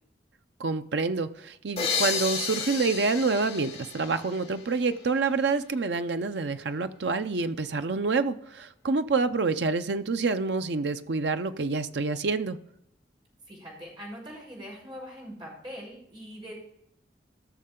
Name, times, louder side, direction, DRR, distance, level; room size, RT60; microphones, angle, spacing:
voice 1, 0.6-12.6, right 4 dB, 80° right, 9 dB, 0.6 m, -27 dB
sound 1, 1.8-5.3, left 5 dB, 35° left, 3.0 m, -32 dB
voice 2, 13.5-16.5, equal, 25° right, -3 dB, 5.0 m, -42 dB
17.0 x 6.6 x 3.8 m, 0.73 s
head